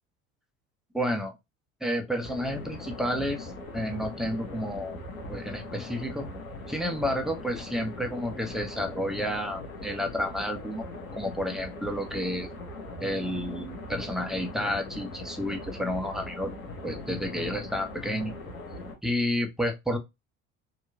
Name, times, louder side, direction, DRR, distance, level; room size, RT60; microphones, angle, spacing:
voice 1, 0.9-1.3 1.8-5.0 5.3-6.3 6.7-10.8 11.2-12.5 13.0-16.5 16.8-18.3 19.0-20.0, equal, ahead, 0.6 m, -30 dB
sound 1, 2.2-18.9, left 2 dB, 85° left, 0.9 m, -40 dB
2.9 x 2.2 x 2.3 m
figure-of-eight pair, 65°, 40 cm